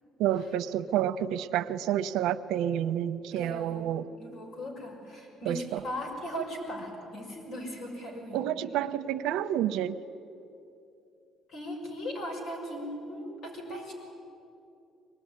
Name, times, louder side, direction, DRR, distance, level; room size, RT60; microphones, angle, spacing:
voice 1, 0.2-4.1 5.5-5.8 8.3-10.0, right 11 dB, 85° right, 0.8 m, -29 dB
voice 2, 3.3-8.4 11.5-13.9, equal, 65° left, 6.3 m, -38 dB
24.0 x 19.5 x 9.9 m
cardioid pair, 125°, 0 cm